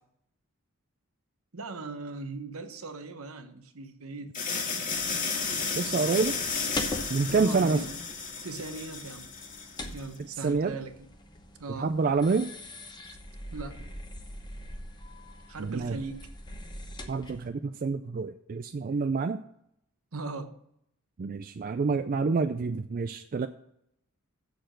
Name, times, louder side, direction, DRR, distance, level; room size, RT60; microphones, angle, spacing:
voice 1, 1.5-4.4 7.3-7.9 8.4-9.3 9.9-11.1 11.6-11.9 13.1-13.2 13.5-13.8 15.5-16.3 20.1-20.6, right 3 dB, 70° right, 1.0 m, -39 dB
sound 1, 4.3-10.0, left 5 dB, 35° left, 1.7 m, -33 dB
voice 2, 5.7-6.4 7.1-7.8 10.4-10.8 11.8-12.5 15.6-16.0 17.1-19.4 21.2-23.5, right 4 dB, 40° right, 0.3 m, -27 dB
sound 2, 6.1-17.5, left 1 dB, 20° left, 1.0 m, -42 dB
7.8 x 6.7 x 6.3 m
head